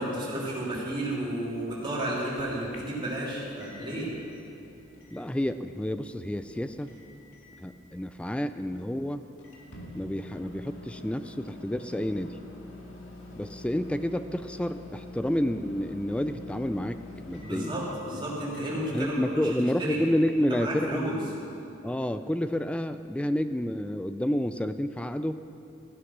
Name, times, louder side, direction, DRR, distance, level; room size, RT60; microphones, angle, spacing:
voice 1, 0.0-4.1 17.4-19.5 19.8-20.0 20.5-21.2, right 1 dB, 25° right, -7 dB, 3.3 m, -32 dB
Microwave oven, 1.5-20.8, left 1 dB, 70° left, 2.0 m, -48 dB
voice 2, 5.1-6.9 7.6-9.3 9.9-12.4 13.3-18.2 18.9-21.2 21.8-25.4, equal, 5° left, 10 dB, 0.3 m, -30 dB
15.5 x 8.1 x 5.9 m, 2.7 s
head